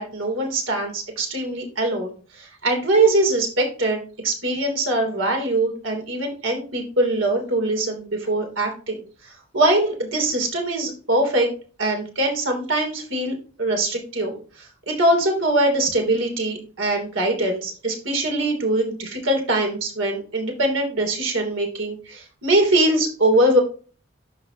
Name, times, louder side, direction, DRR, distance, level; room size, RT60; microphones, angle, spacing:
voice 1, 0.0-9.0 9.5-11.5 11.8-23.6, right 1 dB, 80° right, 2 dB, 3.2 m, -22 dB
12.0 x 4.2 x 2.9 m, 0.38 s
head